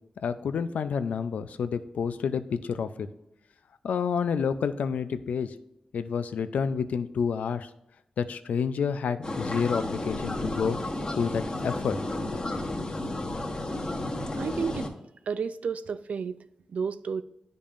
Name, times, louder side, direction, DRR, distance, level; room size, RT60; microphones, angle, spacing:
voice 1, 0.2-3.1 3.8-5.5 5.9-7.7 8.2-10.8 11.1-12.0 12.2-12.5, left 6 dB, 85° left, 11 dB, 0.4 m, -29 dB
sound 1, 9.2-14.9, left 1 dB, 40° left, 1.4 m, -32 dB
voice 2, 14.3-14.9 15.3-16.4 16.7-17.2, right 6 dB, 75° right, 12 dB, 0.4 m, -31 dB
10.0 x 5.3 x 2.5 m, 0.85 s
cardioid pair, 50°, 2 cm